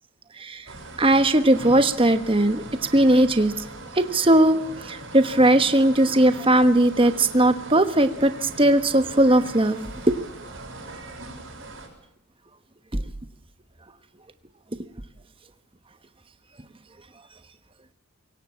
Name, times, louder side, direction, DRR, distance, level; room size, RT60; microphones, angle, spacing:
sound 1, 0.7-11.9, right 2 dB, 60° right, 6.5 m, -40 dB
voice 1, 1.0-2.6 2.9-3.5 4.0-8.3 8.6-9.8 10.1-10.2 12.9-13.0, right 1 dB, 25° right, 10 dB, 1.2 m, -18 dB
23.0 x 17.5 x 8.7 m, 0.82 s
head